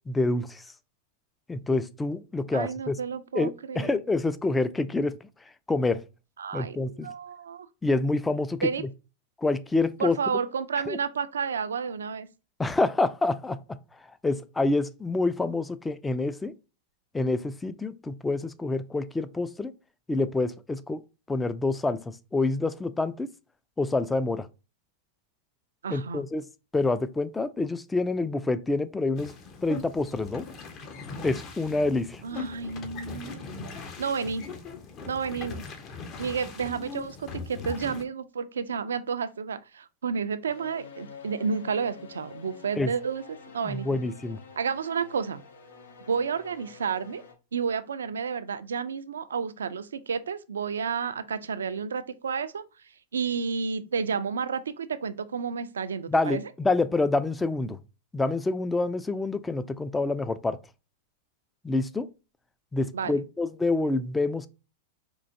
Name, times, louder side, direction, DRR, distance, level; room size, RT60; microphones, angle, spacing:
voice 1, 0.1-0.7 1.5-3.0 3.3-3.5 3.8-5.2 5.7-6.0 6.5-7.1 7.8-8.7 9.4-10.2 10.9-11.0 12.6-13.6 14.2-16.5 17.1-19.7 20.1-21.0 21.3-23.3 23.8-24.5 25.9-26.4 26.7-29.3 29.6-30.4 31.2-32.2 42.8-42.9 43.6-44.4 56.1-57.8 58.1-60.6 61.6-62.1 62.7-64.5, left 2 dB, 10° left, 0.3 m, -27 dB
voice 2, 2.5-4.0 6.4-6.8 7.0-7.7 8.6-8.8 10.0-12.3 25.8-26.2 32.2-33.4 34.0-34.4 35.1-35.6 36.2-43.9 44.6-45.4 46.1-47.2 47.5-52.6 53.1-56.4 62.9-63.3, right 6 dB, 85° right, 0.4 m, -31 dB
sound 1, 29.2-38.0, left 4 dB, 40° left, 0.7 m, -40 dB
sound 2, 40.5-47.3, left 5 dB, 80° left, 0.7 m, -48 dB
4.5 x 2.4 x 2.6 m
hypercardioid pair, 110°, 0 cm